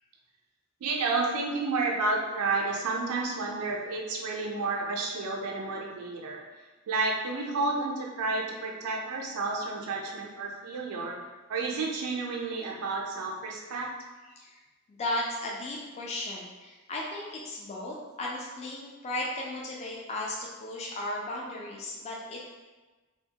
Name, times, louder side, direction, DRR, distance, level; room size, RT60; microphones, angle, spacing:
voice 1, 0.8-6.4 6.9-11.2 11.5-13.9, right 3 dB, 75° right, -1 dB, 0.4 m, -31 dB
voice 2, 14.9-22.5, left 1 dB, 30° left, -3 dB, 0.3 m, -35 dB
2.7 x 2.2 x 2.7 m, 1.2 s
head